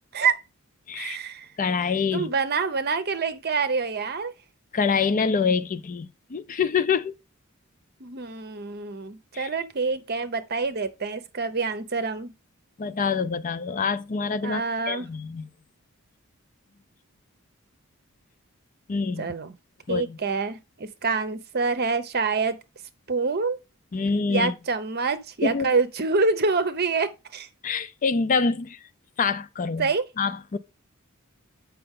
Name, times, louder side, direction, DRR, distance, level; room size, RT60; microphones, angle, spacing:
voice 1, 0.9-1.5 2.1-4.3 8.0-12.3 14.4-15.1 19.2-19.6 19.9-22.6 23.1-23.6 24.3-27.5 29.8-30.1, right 4 dB, 50° right, 0.9 m, -26 dB
voice 2, 1.6-2.3 4.7-7.1 9.3-9.5 12.8-15.5 18.9-19.3 19.9-20.2 23.9-24.5 25.4-25.7 27.6-28.8 29.2-29.9 30.2-30.6, left 5 dB, 40° left, 0.5 m, -26 dB
7.7 x 5.7 x 3.7 m
head